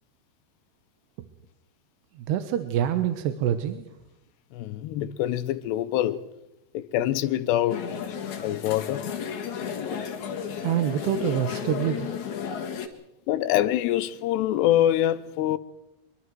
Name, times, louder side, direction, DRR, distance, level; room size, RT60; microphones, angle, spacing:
voice 1, 2.3-3.9 10.6-12.1, right 10 dB, 75° right, 3.1 m, -26 dB
voice 2, 4.5-6.2 6.7-7.8 8.4-9.1 13.3-15.6, left 12 dB, 80° left, 2.8 m, -25 dB
sound 1, 7.7-12.9, left 7 dB, 55° left, 2.6 m, -33 dB
25.0 x 22.5 x 4.7 m
omnidirectional pair, 5.0 m